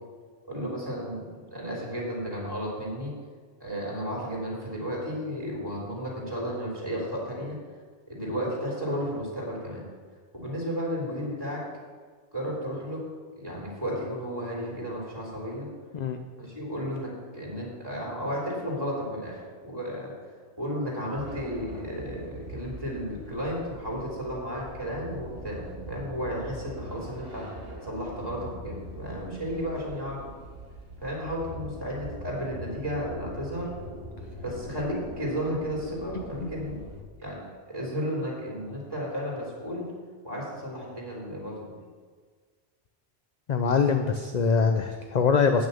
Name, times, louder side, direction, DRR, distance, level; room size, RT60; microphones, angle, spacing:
voice 1, 0.5-3.1 3.6-7.6 8.1-9.8 10.3-11.6 12.3-13.0 13.4-15.7 16.4-20.1 20.6-25.6 25.9-27.5 27.8-30.2 31.0-33.7 34.4-36.8 37.2-39.8 40.2-41.7, equal, 20° right, -4 dB, 3.2 m, -33 dB
sound 1, 21.2-37.0, right 1 dB, 55° right, 1.7 m, -42 dB
voice 2, 43.5-45.7, left 5 dB, 50° left, 6 dB, 0.5 m, -23 dB
9.0 x 6.3 x 7.0 m, 1.5 s
omnidirectional pair, 1.2 m